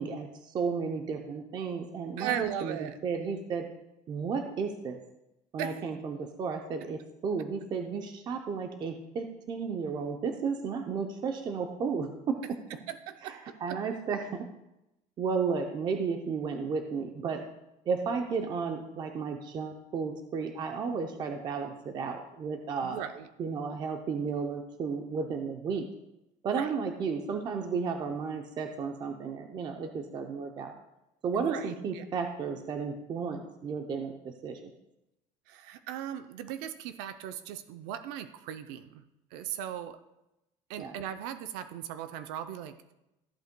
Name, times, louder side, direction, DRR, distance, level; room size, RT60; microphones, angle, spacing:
voice 1, 0.0-3.7 4.1-5.0 5.5-12.4 13.2-14.5 15.2-17.4 17.9-23.0 23.4-25.8 26.4-30.7 31.2-34.7 40.8-40.9, right 5 dB, 30° right, 5 dB, 0.6 m, -33 dB
voice 2, 2.2-3.0 5.6-5.8 12.7-13.8 22.8-23.3 26.5-26.7 31.3-32.1 35.5-39.0 39.3-40.0 40.7-42.8, right 9 dB, 90° right, 9 dB, 0.6 m, -38 dB
14.0 x 8.0 x 2.2 m, 0.91 s
cardioid pair, 175°, 15 cm